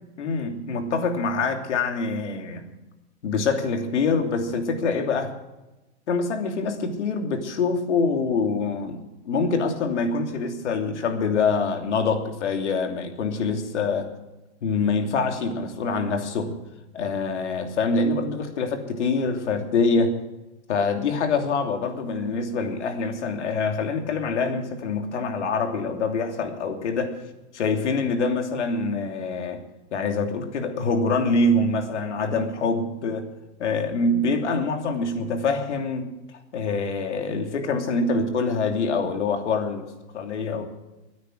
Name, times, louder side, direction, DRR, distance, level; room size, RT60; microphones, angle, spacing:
voice 1, 0.2-2.7 3.2-5.3 6.1-14.1 14.6-16.6 16.9-20.2 20.7-27.1 27.5-29.6 29.9-33.3 33.6-36.1 36.5-39.9 40.1-40.7, left 4 dB, 85° left, 4 dB, 3.0 m, -25 dB
20.5 x 9.4 x 6.3 m, 1.0 s
supercardioid pair, 170°, 34 cm